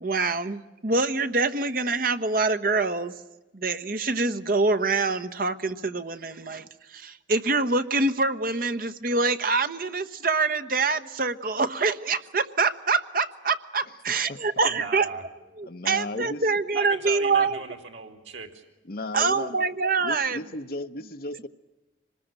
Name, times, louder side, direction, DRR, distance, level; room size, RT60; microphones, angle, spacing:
voice 1, 0.0-3.1 3.5-15.1 15.6-17.6 19.1-20.4, right 3 dB, 50° right, 10 dB, 1.1 m, -25 dB
voice 2, 14.6-15.2 16.7-18.6, right 5 dB, 90° right, 5 dB, 2.7 m, -37 dB
voice 3, 15.7-16.5 18.8-19.6 20.0-21.5, left 2 dB, 50° left, 8 dB, 1.0 m, -35 dB
25.0 x 20.0 x 8.9 m, 1.1 s
head